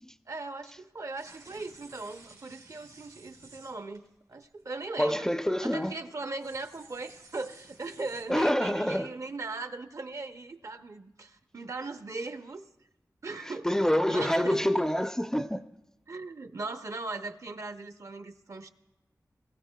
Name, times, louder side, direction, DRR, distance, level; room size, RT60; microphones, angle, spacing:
voice 1, 0.3-4.0 4.3-5.3 5.6-12.6 13.2-14.6 16.1-18.7, right 3 dB, 55° right, 0.6 m, -39 dB
sound 1, 1.1-4.1 4.4-4.6 5.5-5.9 6.3-8.2, right 3 dB, 85° right, 3.3 m, -54 dB
voice 2, 5.0-5.9 8.3-9.1 13.4-15.6, equal, 10° left, 0.4 m, -27 dB
21.5 x 15.0 x 2.2 m
wide cardioid pair, 80°, 6 cm